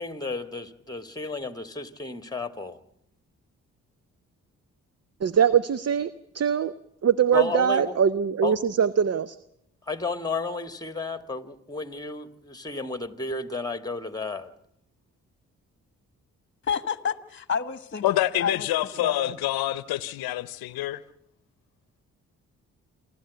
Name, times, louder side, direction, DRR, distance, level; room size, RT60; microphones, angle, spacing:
voice 1, 0.0-2.8 7.3-7.9 8.4-8.6 9.9-14.5, left 3 dB, 10° left, 1.7 m, -32 dB
voice 2, 5.2-6.7 7.0-9.4, right 8 dB, 45° right, 0.8 m, -22 dB
voice 3, 16.6-19.4, left 6 dB, 30° left, 1.3 m, -30 dB
voice 4, 18.0-21.0, left 15 dB, 80° left, 0.8 m, -27 dB
28.0 x 12.5 x 8.2 m
supercardioid pair, 45°, 36 cm